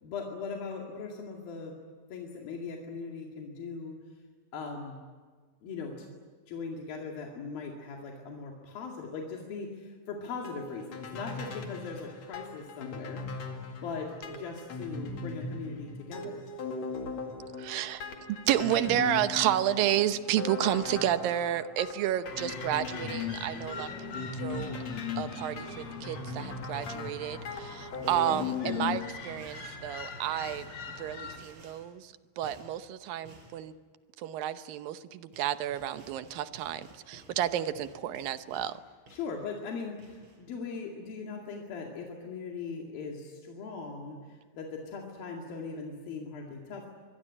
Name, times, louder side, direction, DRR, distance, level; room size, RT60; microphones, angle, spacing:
voice 1, 0.0-1.7 2.1-4.0 4.5-5.0 5.6-6.1 6.5-13.2 13.8-16.5 39.1-46.9, left 4 dB, 85° left, 0 dB, 4.1 m, -39 dB
sound 1, 10.4-29.0, left 5 dB, 50° left, 3.1 m, -38 dB
voice 2, 17.6-18.0 18.3-24.8 25.2-30.7 31.0-33.7 34.2-38.8, right 12 dB, 80° right, 11 dB, 2.7 m, -31 dB
sound 2, 22.2-31.4, left 3 dB, 30° left, 3.3 m, -44 dB
sound 3, 26.8-27.2 28.0-28.7 29.4-29.8 30.4-30.8 31.4-31.9 32.4-32.7 33.2-33.6 35.0-35.1 35.3-38.8 39.1-39.7 40.0-40.4, right 2 dB, 35° right, 5.5 m, -54 dB
25.0 x 22.5 x 9.8 m, 1.5 s
omnidirectional pair, 4.0 m